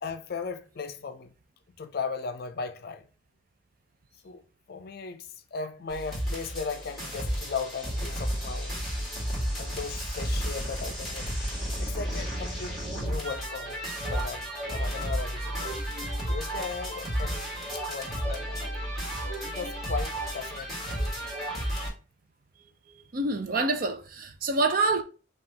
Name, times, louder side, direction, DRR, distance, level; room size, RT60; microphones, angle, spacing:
voice 1, 0.0-1.3 1.8-3.1 4.2-4.4 4.7-8.8 9.6-11.3 11.8-13.8 14.1-15.7 16.3-18.7 19.4-21.1, left 5 dB, 50° left, 0.4 m, -37 dB
sound 1, 5.9-21.9, equal, ahead, 1.7 m, -32 dB
voice 2, 22.9-25.0, right 3 dB, 45° right, 0.5 m, -27 dB
4.9 x 2.4 x 2.8 m
head